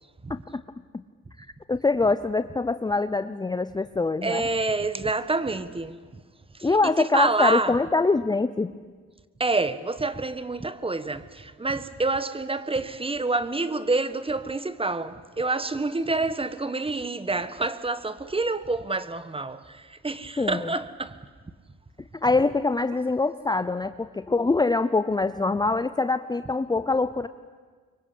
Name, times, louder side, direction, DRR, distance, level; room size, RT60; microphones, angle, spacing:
voice 1, 0.3-0.6 0.9-1.0 1.7-4.4 6.6-8.8 20.4-20.7 22.2-27.3, left 3 dB, 15° left, 0.7 m, -24 dB
voice 2, 4.2-6.0 6.5-7.8 9.4-21.2, right 3 dB, 20° right, 1.4 m, -27 dB
25.5 x 23.5 x 8.5 m
cardioid pair, 90°, 30 cm